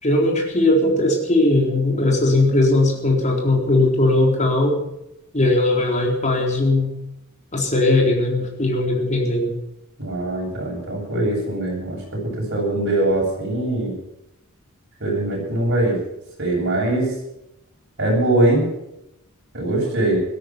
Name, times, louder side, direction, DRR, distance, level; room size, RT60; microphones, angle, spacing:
voice 1, 0.0-4.8 5.3-6.9 7.5-9.5, left 2 dB, 35° left, 1 dB, 4.1 m, -19 dB
voice 2, 10.0-13.9 15.0-16.0 16.4-17.1 18.0-18.6 19.5-20.2, right 1 dB, 55° right, -3 dB, 7.7 m, -22 dB
17.0 x 12.5 x 6.1 m, 0.84 s
head